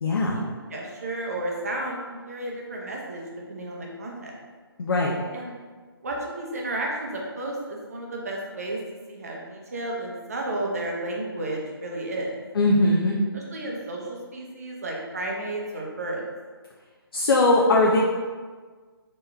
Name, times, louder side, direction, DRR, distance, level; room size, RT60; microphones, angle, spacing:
voice 1, 0.0-0.5 4.8-5.2 12.5-13.1 17.1-18.0, left 2 dB, 65° left, -2 dB, 0.5 m, -20 dB
voice 2, 0.7-4.3 5.3-5.5 6.0-8.8 9.1-12.3 13.3-16.3, right 1 dB, 35° right, -2 dB, 0.6 m, -32 dB
3.5 x 3.0 x 2.2 m, 1.5 s
hypercardioid pair, 170°, 13 cm